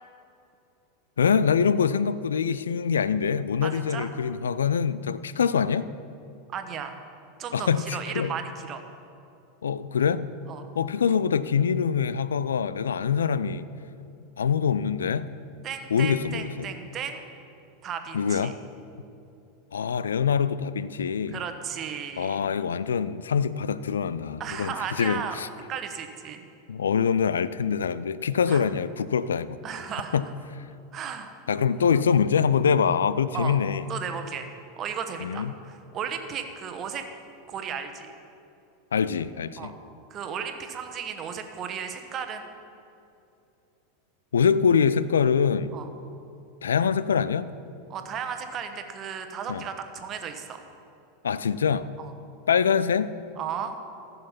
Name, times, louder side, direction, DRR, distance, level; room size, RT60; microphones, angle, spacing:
voice 1, 1.2-5.9 7.5-8.3 9.6-10.3 10.8-13.7 14.4-15.3 15.9-16.7 18.1-18.6 19.7-21.4 22.2-25.5 26.7-29.6 30.1-30.3 31.5-33.8 35.2-35.5 38.9-39.7 44.3-45.7 46.6-47.5 49.5-49.6 51.2-51.9 52.5-53.1, left 6 dB, 75° left, 16 dB, 0.3 m, -24 dB
voice 2, 3.6-4.1 6.5-7.0 7.4-8.8 10.5-10.6 15.6-17.2 17.8-18.5 21.3-22.4 24.4-25.4 25.7-26.4 28.5-28.6 29.6-30.2 30.9-31.3 31.8-32.0 33.3-33.6 33.9-34.5 34.8-37.0 37.5-38.1 39.6-39.7 40.1-42.5 45.7-45.9 47.9-50.6 52.0-52.1 53.4-53.7, right 7 dB, 35° right, 7 dB, 1.1 m, -35 dB
15.0 x 6.8 x 5.8 m, 2.7 s
figure-of-eight pair, 85°, 0 cm